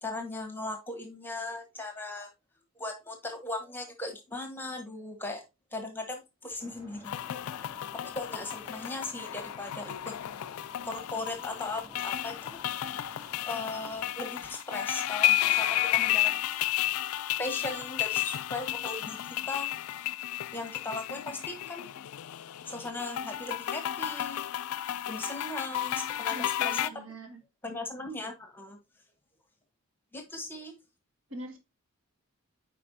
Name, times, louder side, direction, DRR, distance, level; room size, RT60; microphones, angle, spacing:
voice 1, 0.0-2.3 2.8-5.4 5.7-7.1 8.0-10.1 10.8-12.6 13.5-16.4 17.4-19.7 20.5-21.9 22.6-24.5 25.1-26.4 26.6-26.9 27.6-28.8 30.1-30.7, left 2 dB, 10° left, 1.1 m, -38 dB
sound 1, 6.6-14.1, left 1 dB, 10° right, 2.2 m, -53 dB
sound 2, 7.0-26.9, left 13 dB, 80° left, 0.3 m, -32 dB
voice 2, 26.3-27.4 31.3-31.6, right 1 dB, 65° right, 1.6 m, -43 dB
8.7 x 4.9 x 2.6 m
head